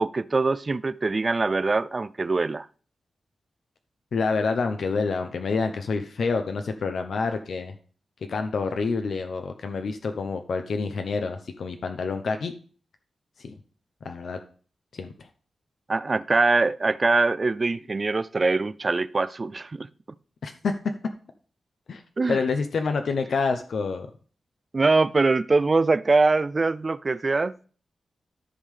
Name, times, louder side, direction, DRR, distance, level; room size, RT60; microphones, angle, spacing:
voice 1, 0.0-2.7 15.9-19.9 22.2-22.4 24.7-27.7, right 3 dB, 30° right, 0.3 m, -23 dB
voice 2, 4.1-7.7 8.3-12.5 13.4-13.5 14.0-14.4 14.9-15.3 20.4-20.7 21.9-22.0 22.3-24.1, left 4 dB, 70° left, 0.7 m, -27 dB
13.5 x 5.5 x 3.3 m
wide cardioid pair, 140°, 0 cm